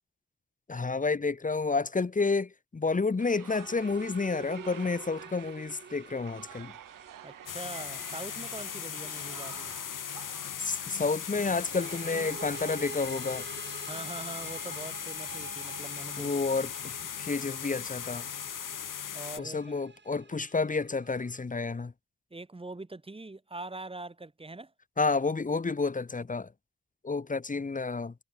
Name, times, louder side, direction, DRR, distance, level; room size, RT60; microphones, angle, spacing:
voice 1, 0.7-6.7 10.6-13.5 16.2-18.2 19.4-21.9 25.0-26.5 27.0-28.1, left 4 dB, 25° left, 1.3 m, -30 dB
sound 1, 3.2-12.6, right 11 dB, 90° right, 1.2 m, -49 dB
sound 2, 3.5-10.0 11.5-21.4, right 5 dB, 35° right, 1.8 m, -47 dB
voice 2, 7.2-9.7 13.8-16.3 19.1-19.6 22.3-24.7, right 2 dB, 15° right, 2.3 m, -43 dB
sound 3, 7.5-19.4, left 9 dB, 80° left, 2.6 m, -38 dB
wide cardioid pair, 115°, 32 cm